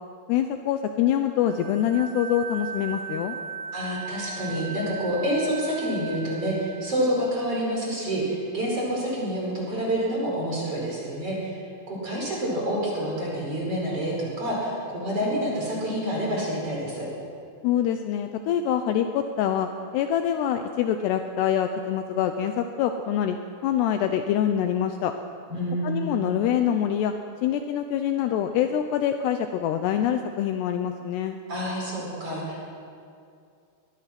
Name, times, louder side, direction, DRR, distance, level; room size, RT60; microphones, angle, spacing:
voice 1, 0.3-3.4 17.6-23.4 23.6-25.1 25.8-27.1 27.4-31.4, left 9 dB, 85° left, 7 dB, 2.4 m, -25 dB
sound 1, 1.4-7.9, right 6 dB, 85° right, 2.0 m, -38 dB
voice 2, 3.7-11.6 11.9-17.1 25.5-26.1 31.5-32.6, equal, 30° right, -4 dB, 5.6 m, -28 dB
22.5 x 21.0 x 6.0 m, 2.4 s
omnidirectional pair, 5.8 m